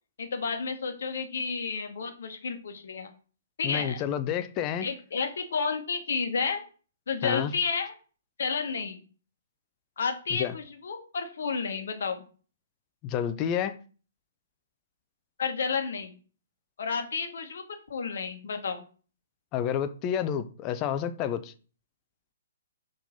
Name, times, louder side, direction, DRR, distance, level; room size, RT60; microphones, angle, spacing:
voice 1, 0.2-3.1 3.6-4.0 4.8-6.6 7.1-7.9 8.4-9.0 10.0-12.2 15.4-16.1 16.8-17.6 17.9-18.8, left 5 dB, 55° left, 1.1 m, -31 dB
voice 2, 3.6-4.9 7.2-7.5 10.4-10.5 13.0-13.8 19.5-21.5, left 9 dB, 25° left, 0.5 m, -29 dB
4.7 x 3.8 x 5.4 m
figure-of-eight pair, 120°, 0 cm